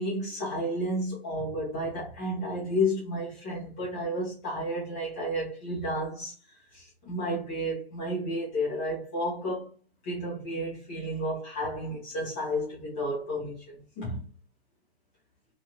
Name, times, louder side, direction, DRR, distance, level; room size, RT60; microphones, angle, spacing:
voice 1, 0.0-6.3 6.7-9.7 10.0-14.2, equal, 5° left, 0.6 m, -32 dB
2.9 x 2.5 x 4.2 m
hypercardioid pair, 175°, 31 cm